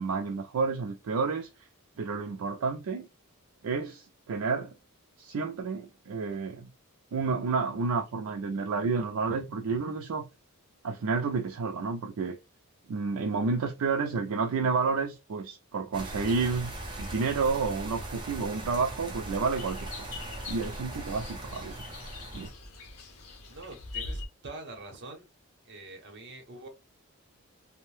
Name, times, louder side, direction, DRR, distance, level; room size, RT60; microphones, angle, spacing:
voice 1, 0.0-1.5 2.0-3.1 3.6-4.7 5.2-6.7 7.1-10.3 10.8-12.4 12.9-16.7 17.0-20.2 20.5-21.7 22.3-22.5, right 4 dB, 70° right, 0.4 m, -30 dB
sound 1, 15.9-22.5, right 1 dB, 20° right, 0.6 m, -39 dB
sound 2, 16.2-24.3, left 3 dB, 65° left, 0.7 m, -45 dB
voice 2, 23.5-25.3 25.6-26.7, right 2 dB, 50° right, 0.8 m, -45 dB
2.6 x 2.1 x 3.2 m
head